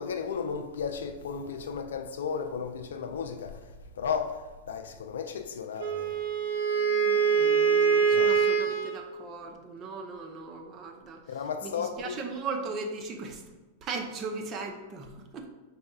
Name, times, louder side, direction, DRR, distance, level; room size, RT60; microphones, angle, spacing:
voice 1, 0.0-6.1 8.1-8.4 11.3-12.3, left 6 dB, 80° left, 0.4 m, -34 dB
Wind instrument woodwind instrument, 5.8-9.0, right 6 dB, 75° right, 0.7 m, -24 dB
voice 2, 6.8-11.2 11.6-13.4 13.8-15.5, right 4 dB, 35° right, 0.7 m, -38 dB
5.2 x 4.1 x 2.4 m
hypercardioid pair, 105°, 0 cm